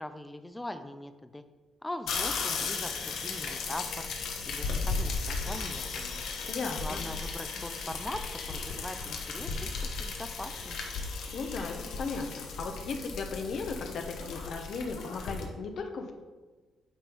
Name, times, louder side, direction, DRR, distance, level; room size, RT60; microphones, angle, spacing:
voice 1, 0.0-1.4 1.8-4.1 4.5-6.2 6.8-10.8, left 1 dB, 10° left, 9 dB, 0.6 m, -41 dB
sound 1, 2.1-15.4, left 4 dB, 75° left, 1.2 m, -35 dB
voice 2, 6.5-7.0 11.3-16.1, left 4 dB, 60° left, 4 dB, 0.9 m, -36 dB
9.0 x 3.8 x 4.5 m, 1.3 s
cardioid pair, 90°, 0 cm